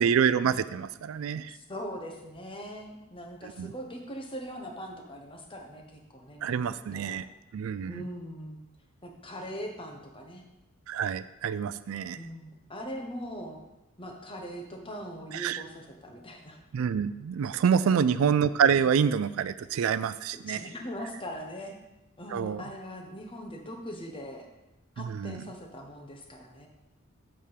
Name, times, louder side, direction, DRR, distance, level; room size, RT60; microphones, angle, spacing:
voice 1, 0.0-1.6 3.6-3.7 6.4-7.3 7.5-8.0 10.9-12.2 15.3-15.6 16.7-20.7 22.3-22.6 25.0-25.4, right 7 dB, 80° right, 15 dB, 0.3 m, -27 dB
voice 2, 1.5-7.2 7.8-8.6 9.0-10.4 12.1-13.6 14.0-16.6 17.8-18.3 20.5-21.7 22.2-24.5 25.0-26.7, equal, 25° left, 2 dB, 1.1 m, -41 dB
8.3 x 3.7 x 6.6 m, 0.98 s
head